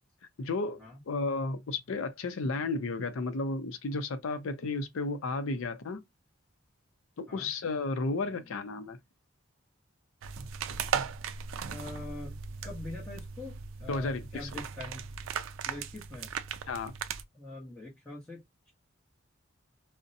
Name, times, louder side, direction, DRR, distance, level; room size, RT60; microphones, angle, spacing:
voice 1, 0.4-6.0 7.2-9.0 13.9-14.5 16.7-16.9, left 3 dB, 85° left, 0.5 m, -33 dB
voice 2, 8.2-8.6 11.7-12.4 12.6-15.0 15.7-16.3 17.3-18.7, left 2 dB, 5° left, 0.9 m, -44 dB
sound 1, 10.2-17.2, right 7 dB, 75° right, 0.4 m, -37 dB
2.5 x 2.1 x 2.6 m
head